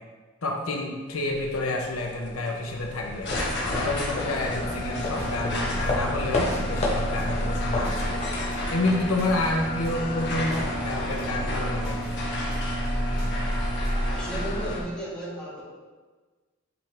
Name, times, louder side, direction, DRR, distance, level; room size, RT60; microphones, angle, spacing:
voice 1, 0.4-12.0, left 2 dB, 85° left, 1 dB, 0.8 m, -29 dB
sound 1, 1.1-14.8, equal, 55° left, 1.1 m, -30 dB
sound 2, 2.7-12.3, left 2 dB, 30° left, 0.9 m, -33 dB
sound 3, 5.2-14.1, equal, 30° right, 1.8 m, -46 dB
voice 2, 13.8-15.6, right 1 dB, 5° left, -8 dB, 1.6 m, -35 dB
8.1 x 3.5 x 3.3 m, 1.4 s
head